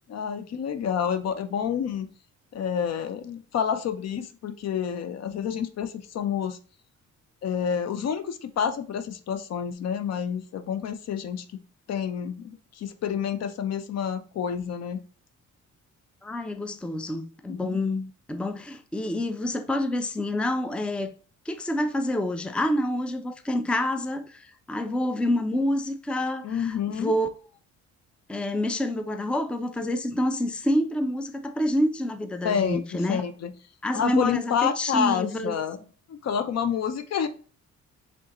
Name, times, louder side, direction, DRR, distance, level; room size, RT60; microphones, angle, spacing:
voice 1, 0.1-2.1 2.5-6.6 7.4-11.4 11.9-15.0 17.5-17.8 26.4-27.1 32.4-33.5 33.9-35.8 36.1-37.3, left 8 dB, 60° left, 0.6 m, -28 dB
voice 2, 16.2-21.1 21.5-27.3 28.3-33.2 33.8-35.6, left 1 dB, 5° left, 0.5 m, -27 dB
4.7 x 3.7 x 2.9 m
cardioid pair, 90°, 30 cm